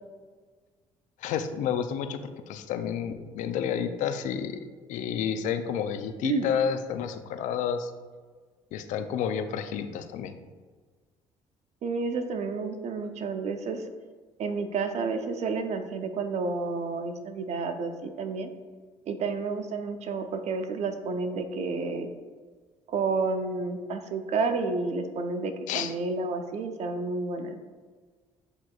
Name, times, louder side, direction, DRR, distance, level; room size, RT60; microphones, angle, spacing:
voice 1, 1.2-7.9 8.7-10.3 25.7-25.9, left 8 dB, 70° left, 9 dB, 0.4 m, -30 dB
voice 2, 11.8-13.8 14.4-18.5 19.1-22.1 22.9-27.6, right 4 dB, 55° right, 7 dB, 0.5 m, -30 dB
7.9 x 2.9 x 2.3 m, 1.5 s
supercardioid pair, 65°, 13 cm